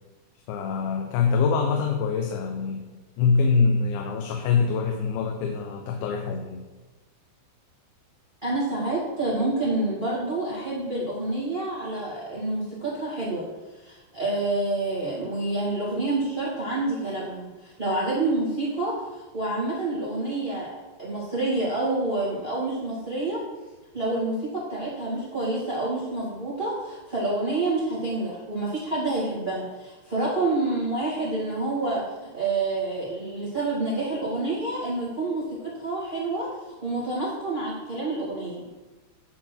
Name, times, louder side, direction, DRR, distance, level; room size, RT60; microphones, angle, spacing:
voice 1, 0.5-2.9 3.2-6.7, left 5 dB, 85° left, 3 dB, 3.1 m, -24 dB
voice 2, 8.4-13.5 13.8-20.7 21.0-23.4 23.9-36.5 36.8-38.6, right 2 dB, 35° right, -7 dB, 0.7 m, -28 dB
10.5 x 4.0 x 5.9 m, 1.2 s
omnidirectional pair, 5.1 m